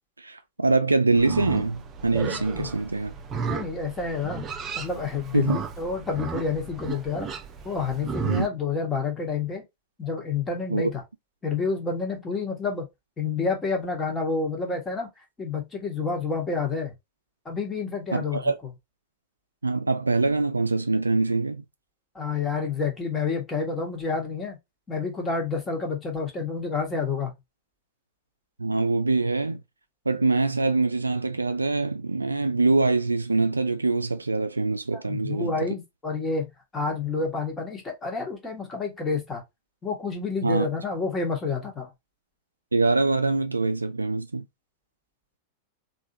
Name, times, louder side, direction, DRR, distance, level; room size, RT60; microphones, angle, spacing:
voice 1, 0.2-3.1 5.3-5.6 8.2-8.5 10.7-10.9 18.1-18.6 19.6-21.6 28.6-29.6 30.1-35.5 40.4-40.7 42.7-44.4, right 3 dB, 80° right, 0.4 m, -24 dB
Livestock farm animals working animals, 1.1-8.5, right 6 dB, 25° right, 0.5 m, -34 dB
voice 2, 3.5-4.5 4.7-7.3 7.6-9.6 10.0-11.0 11.4-12.8 13.2-15.1 15.4-16.9 17.4-18.5 22.1-24.6 24.9-27.3 34.9-39.4 39.8-41.9, left 4 dB, 15° left, 1.3 m, -29 dB
3.4 x 2.6 x 2.6 m
figure-of-eight pair, 90°, 0 cm